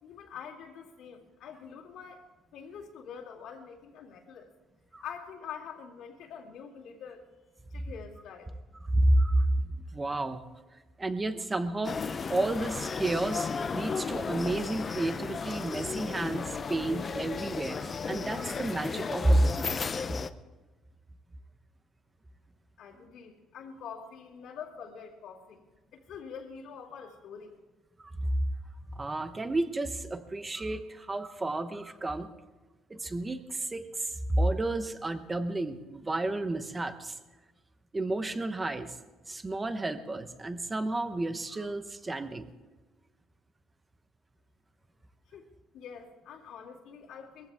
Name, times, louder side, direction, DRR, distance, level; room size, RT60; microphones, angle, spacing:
voice 1, 0.0-2.2 2.5-4.5 5.0-7.2 7.7-8.6 22.8-27.6 45.3-45.5 45.7-47.5, left 7 dB, 70° left, -6 dB, 2.5 m, -45 dB
voice 2, 8.8-10.4 11.0-19.9 28.0-28.3 28.9-32.3 32.9-37.2 37.9-39.0 39.3-42.5, right 1 dB, 15° right, 10 dB, 1.0 m, -30 dB
sound 1, 11.8-20.3, left 5 dB, 30° left, 0.6 m, -34 dB
21.5 x 15.5 x 3.6 m, 1.2 s
cardioid pair, 145°, 0 cm